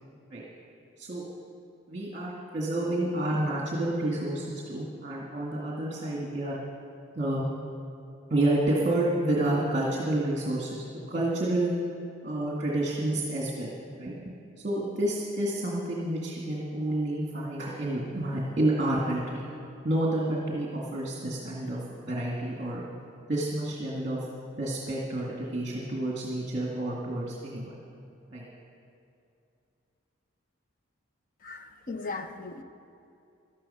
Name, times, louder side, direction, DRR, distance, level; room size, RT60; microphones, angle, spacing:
voice 1, 1.9-6.6 7.2-7.5 8.3-11.7 12.2-14.1 14.6-19.4 19.8-22.8 23.3-24.2 24.6-27.7 28.3-28.5, right 1 dB, 35° right, -4 dB, 2.0 m, -29 dB
voice 2, 31.4-32.6, left 3 dB, 40° left, 7 dB, 0.8 m, -37 dB
15.0 x 12.0 x 5.6 m, 2.6 s
head